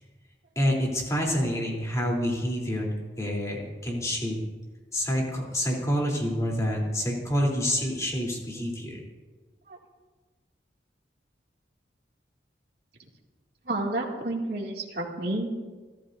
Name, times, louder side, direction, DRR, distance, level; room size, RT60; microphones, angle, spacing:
voice 1, 0.6-4.4 4.9-9.0, equal, 15° left, -2 dB, 3.4 m, -27 dB
voice 2, 13.6-15.5, right 2 dB, 55° right, -2 dB, 2.5 m, -30 dB
29.5 x 13.5 x 2.7 m, 1.3 s
head